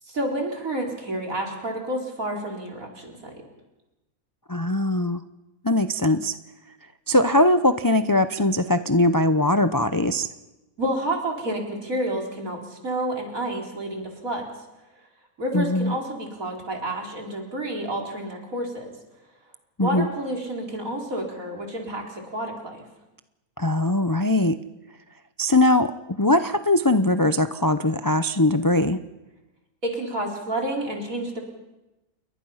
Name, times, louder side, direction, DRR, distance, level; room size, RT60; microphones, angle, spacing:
voice 1, 0.1-3.3 10.8-14.5 15.4-18.9 19.8-22.8 29.8-31.4, right 1 dB, 65° right, 0 dB, 4.6 m, -29 dB
voice 2, 4.5-5.2 5.6-6.4 7.1-10.3 15.5-16.0 19.8-20.1 23.6-24.6 25.4-29.0, left 1 dB, 25° left, 10 dB, 0.5 m, -21 dB
28.5 x 22.5 x 5.7 m, 0.99 s
omnidirectional pair, 1.6 m